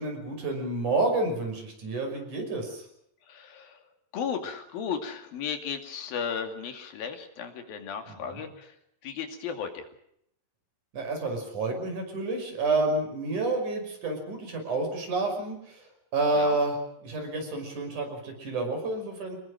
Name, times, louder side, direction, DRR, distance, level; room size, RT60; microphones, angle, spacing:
voice 1, 0.0-2.9 8.3-8.4 10.9-19.4, right 2 dB, 55° right, 4 dB, 7.1 m, -29 dB
voice 2, 3.3-3.8 4.1-8.8 9.0-9.9 16.3-16.6, left 7 dB, 80° left, 6 dB, 4.3 m, -35 dB
27.0 x 21.0 x 6.4 m, 0.74 s
omnidirectional pair, 4.1 m